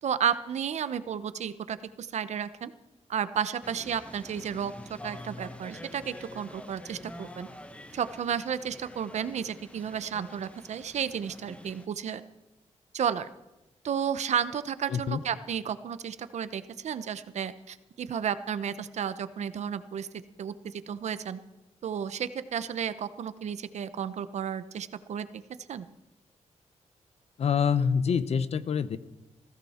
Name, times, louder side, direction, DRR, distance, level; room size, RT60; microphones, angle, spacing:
voice 1, 0.0-2.7 3.1-7.5 7.9-12.2 12.9-13.3 13.8-20.1 20.4-21.4 21.8-25.4 25.7-25.9, right 8 dB, 70° right, 13 dB, 0.8 m, -32 dB
sound 1, 3.6-11.9, left 1 dB, 10° left, 1.0 m, -47 dB
voice 2, 14.9-15.2 27.4-29.0, left 6 dB, 60° left, 14 dB, 0.8 m, -26 dB
20.5 x 15.5 x 4.3 m, 0.98 s
wide cardioid pair, 130°, 12 cm